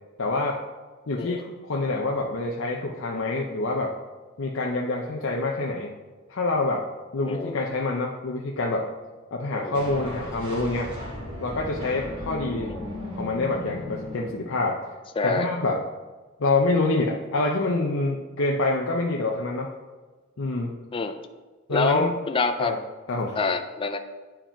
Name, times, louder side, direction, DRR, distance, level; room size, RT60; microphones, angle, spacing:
voice 1, 0.2-0.6 1.1-3.9 4.4-5.9 6.3-6.8 7.1-8.9 9.3-10.9 11.4-12.8 13.1-14.8 15.2-15.8 16.4-19.7 20.4-20.7 21.7-22.1 22.6-22.8 23.1-23.4, left 2 dB, 65° left, 0 dB, 0.7 m, -26 dB
voice 2, 7.3-7.6 9.5-9.8 12.7-12.9 15.2-15.5 20.9-21.3 21.7-22.7 23.4-24.0, left 4 dB, 25° left, 7 dB, 0.4 m, -26 dB
sound 1, 9.7-14.9, left 1 dB, 25° right, 2.2 m, -36 dB
8.9 x 4.8 x 4.4 m, 1.3 s
head